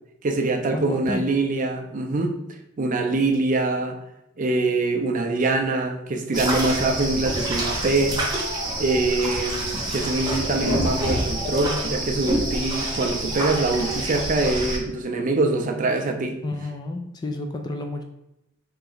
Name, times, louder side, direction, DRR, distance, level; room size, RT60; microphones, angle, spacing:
voice 1, 0.2-2.4 2.8-4.0 4.4-8.2 8.8-16.4, right 2 dB, 40° right, 5 dB, 0.4 m, -24 dB
voice 2, 0.7-1.2 16.4-18.0, left 2 dB, 20° left, 4 dB, 0.3 m, -30 dB
sound 1, 6.3-14.8, right 1 dB, 20° right, 0.8 m, -27 dB
3.3 x 2.9 x 3.9 m, 0.86 s
head